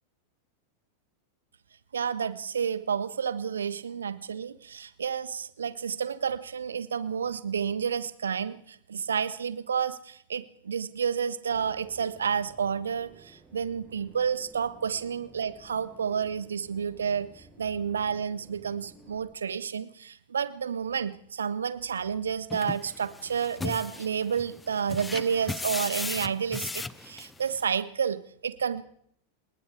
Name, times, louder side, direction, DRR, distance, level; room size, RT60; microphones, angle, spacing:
voice 1, 1.9-28.8, right 7 dB, 70° right, 13 dB, 1.5 m, -30 dB
sound 1, 11.5-19.3, right 2 dB, 10° right, 6.8 m, -55 dB
sound 2, 22.5-27.6, left 3 dB, 10° left, 0.8 m, -37 dB
30.0 x 19.0 x 4.8 m, 0.65 s
figure-of-eight pair, 90°, 0 cm